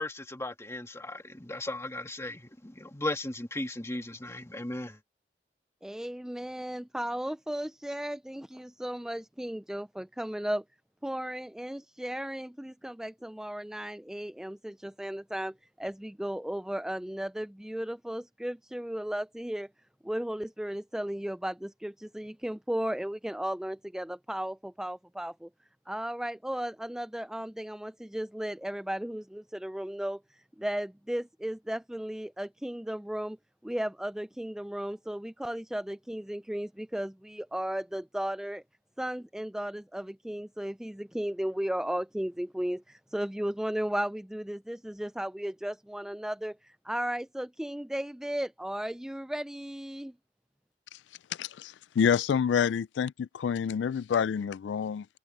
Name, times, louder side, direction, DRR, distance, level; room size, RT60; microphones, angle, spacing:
voice 1, 0.0-5.0, left 2 dB, 15° left, 1.8 m, -36 dB
voice 2, 5.8-10.6 11.0-19.7 20.0-25.5 25.9-33.4 33.6-38.6 39.0-50.1, right 1 dB, 5° right, 0.3 m, -35 dB
voice 3, 51.3-55.1, left 7 dB, 85° left, 0.3 m, -28 dB
head